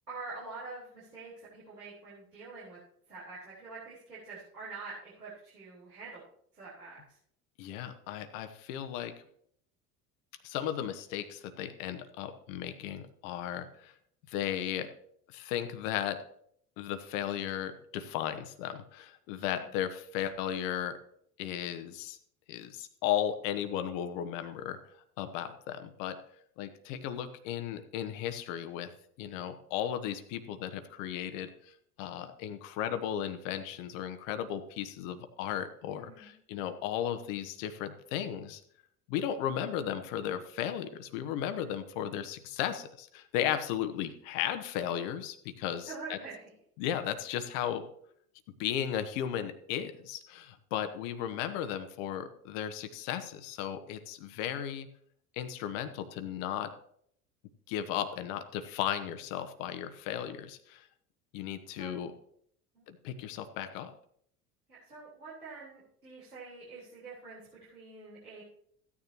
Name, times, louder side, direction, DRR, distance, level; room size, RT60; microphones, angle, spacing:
voice 1, 0.1-2.8 3.1-6.2 6.5-7.2 19.4-19.6 35.9-36.3 45.9-46.4 61.7-62.1 62.7-62.8 64.7-68.4, right 3 dB, 90° right, -8 dB, 4.1 m, -46 dB
voice 2, 7.6-9.2 10.4-13.9 14.3-14.9 15.3-16.2 16.8-21.0 21.4-22.2 22.5-24.8 25.2-26.2 26.6-28.9 29.2-38.6 39.1-46.2 46.8-47.9 48.5-54.9 55.4-56.7 57.7-60.9 61.3-62.1 62.9-63.9, left 10 dB, 60° left, 9 dB, 1.2 m, -35 dB
15.5 x 9.8 x 2.9 m, 0.66 s
figure-of-eight pair, 70°, 45 cm